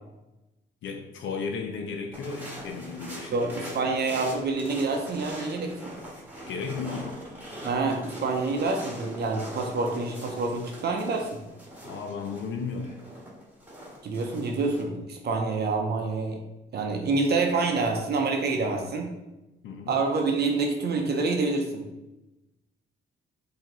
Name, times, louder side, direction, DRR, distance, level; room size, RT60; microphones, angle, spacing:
voice 1, 0.8-3.9 6.5-7.2 11.8-13.0 19.6-19.9, left 5 dB, 75° left, 4 dB, 0.6 m, -35 dB
sound 1, 2.1-14.8, equal, 10° right, 1.6 m, -42 dB
voice 2, 3.3-5.9 7.6-11.4 14.0-16.4 16.7-19.1 19.9-21.9, right 3 dB, 55° right, 3 dB, 0.7 m, -27 dB
4.6 x 2.8 x 3.8 m, 1.0 s
cardioid pair, 90°, 20 cm